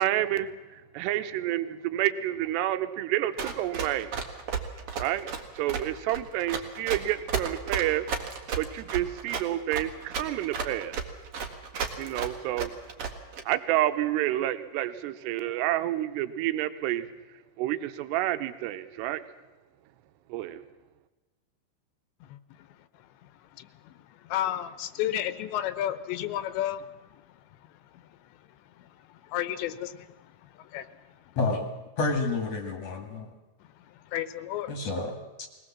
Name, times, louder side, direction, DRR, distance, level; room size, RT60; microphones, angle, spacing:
voice 1, 0.0-4.2 5.0-10.9 12.0-12.7 13.5-17.1 17.6-19.2 20.3-20.6, right 14 dB, 75° right, 2.8 m, -29 dB
Run, 3.4-13.4, right 6 dB, 55° right, 1.7 m, -33 dB
voice 2, 22.2-22.7 23.2-27.2 27.9-28.0 28.8-28.9 29.2-31.0 33.6-33.7 34.0-34.8, left 12 dB, 80° left, 3.0 m, -33 dB
voice 3, 31.4-31.7 32.0-33.3 34.7-35.2, left 3 dB, 50° left, 2.2 m, -29 dB
22.0 x 18.5 x 7.3 m
omnidirectional pair, 5.2 m